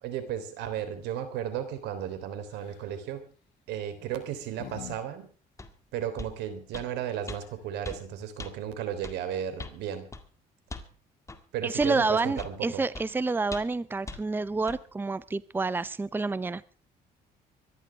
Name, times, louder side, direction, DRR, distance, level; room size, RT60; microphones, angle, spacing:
voice 1, 0.0-3.2 3.7-5.3 5.9-10.1 11.5-12.8, right 9 dB, 90° right, 11 dB, 3.3 m, -34 dB
sound 1, 2.5-2.9 3.9-5.0 5.3-5.4 7.0-7.1 7.3-7.7, left 13 dB, 85° left, 2.0 m, -46 dB
sound 2, 5.6-5.7 6.2-6.4 6.7-6.9 7.3-7.4 7.8-8.0 8.4-8.5 9.0-9.2 9.6-9.8 10.1-10.3 10.7-10.9 11.3-11.4 11.8-12.0 12.4-12.6 12.9-13.1 13.5-13.8 14.1-14.2 14.7-14.8, left 2 dB, 15° left, 2.0 m, -40 dB
voice 2, 11.6-16.6, right 3 dB, 10° right, 18 dB, 0.7 m, -28 dB
25.0 x 11.5 x 3.4 m, 0.40 s
cardioid pair, 110°, 17 cm